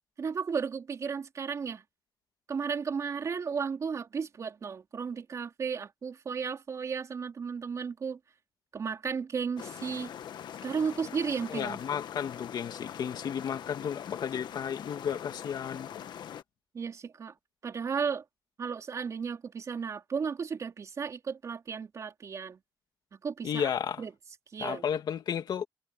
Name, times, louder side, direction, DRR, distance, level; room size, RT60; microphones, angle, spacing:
voice 1, 0.2-1.8 2.5-8.2 8.7-10.1 10.6-11.8 16.7-17.3 17.6-18.2 18.6-22.6 23.2-23.7 24.0-24.1 24.5-24.8, right 6 dB, 45° right, 3.9 m, -34 dB
sound 1, 9.6-16.4, left 9 dB, 85° left, 1.2 m, -43 dB
voice 2, 11.5-15.9 23.4-24.0 24.6-25.7, left 8 dB, 70° left, 2.0 m, -33 dB
wide cardioid pair, 165°, 7 cm